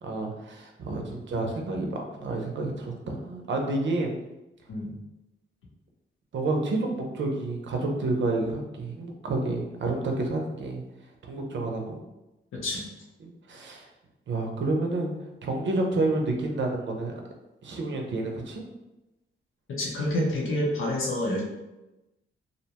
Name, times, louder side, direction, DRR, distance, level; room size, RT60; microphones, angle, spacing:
voice 1, 0.0-4.1 6.3-10.8 11.2-12.0 13.2-13.8 14.3-15.1 15.4-17.1 17.6-18.6, right 2 dB, 60° right, 2 dB, 0.6 m, -29 dB
voice 2, 12.5-12.8 19.7-21.4, left 1 dB, 75° left, -3 dB, 0.7 m, -28 dB
2.6 x 2.2 x 2.8 m, 0.98 s
cardioid pair, 75°, 21 cm